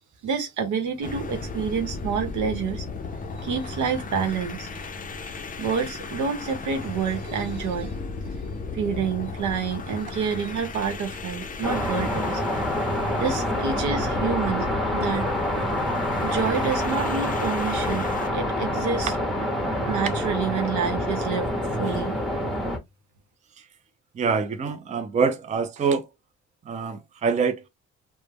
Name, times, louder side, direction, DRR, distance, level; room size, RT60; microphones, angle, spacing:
voice 1, 0.2-2.8 3.4-4.7 5.2-5.3 5.6-7.9 8.7-12.4 13.1-15.3 16.2-18.1 18.3-19.1 19.9-21.5 21.8-22.2, right 6 dB, 80° right, 0.9 m, -28 dB
sound 1, 1.0-18.4, left 4 dB, 30° left, 0.5 m, -35 dB
sound 2, 11.6-22.8, left 1 dB, ahead, 0.8 m, -27 dB
voice 2, 24.1-26.1 26.7-27.7, right 5 dB, 25° right, 0.4 m, -25 dB
2.2 x 2.1 x 3.3 m
cardioid pair, 90°, 30 cm